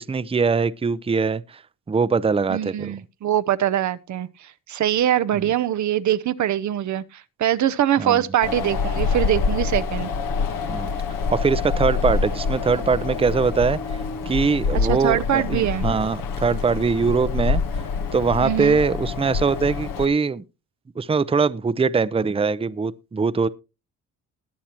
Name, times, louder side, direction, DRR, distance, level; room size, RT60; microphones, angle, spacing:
voice 1, 0.0-1.6 1.9-2.9 5.3-5.5 8.0-8.2 10.7-10.9 11.3-13.8 14.3-17.6 18.1-20.4 21.0-23.5, right 5 dB, 15° right, 0.6 m, -22 dB
voice 2, 2.5-10.1 14.9-15.9 18.4-18.8, right 11 dB, 60° right, 0.7 m, -23 dB
Wind, 8.4-20.1, left 5 dB, 75° left, 1.4 m, -26 dB
20.5 x 7.2 x 3.0 m
cardioid pair, 75°, 33 cm